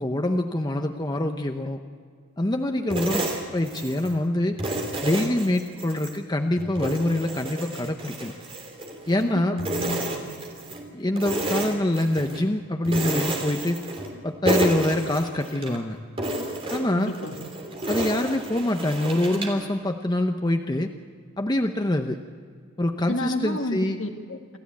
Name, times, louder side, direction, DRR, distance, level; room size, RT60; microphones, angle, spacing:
voice 1, 0.0-1.8 2.4-3.3 3.5-4.6 5.0-8.3 9.1-9.6 10.9-13.8 14.2-16.0 16.7-17.1 17.9-20.9 21.4-22.2 22.8-24.0, left 1 dB, 20° left, 5 dB, 0.7 m, -25 dB
sound 1, 2.9-4.2 4.6-6.2 6.6-9.3 9.6-10.8 11.2-12.4 12.8-14.2 14.4-15.8 16.2-19.6, right 1 dB, 25° right, 3.3 m, -30 dB
voice 2, 9.2-10.2 17.0-17.3 23.0-24.6, left 1 dB, 60° left, 3 dB, 2.1 m, -31 dB
28.0 x 14.0 x 8.4 m, 2.1 s
head